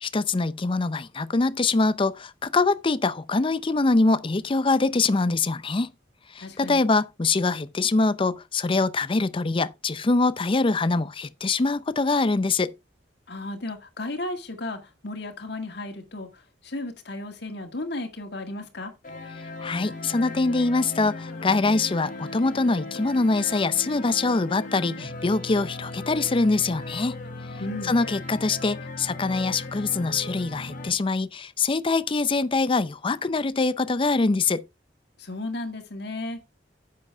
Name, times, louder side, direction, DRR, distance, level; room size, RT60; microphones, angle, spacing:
voice 1, 0.0-5.9 6.3-12.7 19.6-27.2 27.8-34.6, left 3 dB, 30° left, 0.5 m, -24 dB
voice 2, 6.4-6.8 13.3-16.3 16.6-18.9 27.6-28.0 35.2-36.4, left 2 dB, 65° left, 2.0 m, -34 dB
sound 1, 19.0-30.9, left 2 dB, 45° left, 1.8 m, -37 dB
10.0 x 7.7 x 3.4 m
head